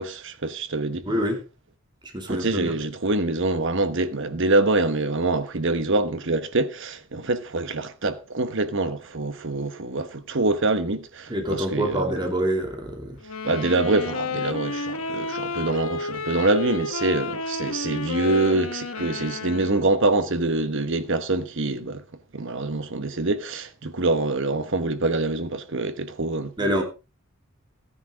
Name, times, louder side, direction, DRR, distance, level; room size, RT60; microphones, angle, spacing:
voice 1, 0.0-1.1 2.3-12.0 13.4-22.0 22.3-26.5, right 2 dB, 60° right, 1.2 m, -25 dB
voice 2, 1.0-1.4 2.0-2.7 11.3-13.2 26.6-26.8, equal, 20° right, 2.6 m, -26 dB
sound 1, 13.2-20.1, left 3 dB, 85° left, 1.5 m, -31 dB
14.5 x 10.0 x 3.7 m
head